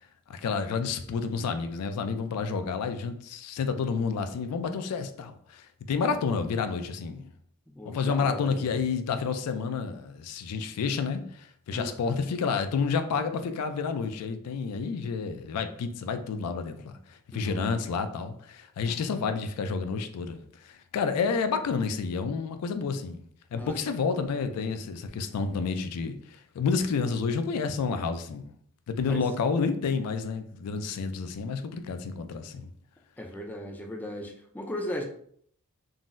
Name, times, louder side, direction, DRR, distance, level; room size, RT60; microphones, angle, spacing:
voice 1, 0.3-7.3 7.9-23.2 23.5-28.5 28.9-32.7, left 5 dB, 90° left, 0.4 m, -30 dB
voice 2, 7.7-8.8 11.7-12.2 17.3-17.7 23.5-23.8 29.1-29.2 33.2-35.0, left 1 dB, 10° left, 0.3 m, -37 dB
3.7 x 2.0 x 2.5 m
head